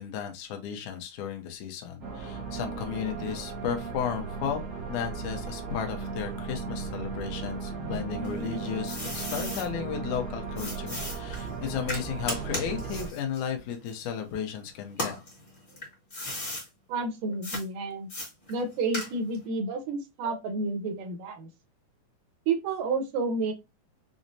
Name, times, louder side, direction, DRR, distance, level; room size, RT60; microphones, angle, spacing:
voice 1, 0.0-4.6 4.9-15.2, left 8 dB, 75° left, 2.0 m, -34 dB
sound 1, 2.0-13.1, right 5 dB, 60° right, 1.0 m, -36 dB
sound 2, 8.2-9.7 10.6-14.5 14.9-16.7 17.4-17.6 18.1-19.4, left 1 dB, 35° left, 0.8 m, -36 dB
voice 2, 16.9-18.1 18.5-21.5 22.5-23.5, right 3 dB, 80° right, 2.3 m, -30 dB
6.1 x 2.0 x 2.6 m
omnidirectional pair, 3.7 m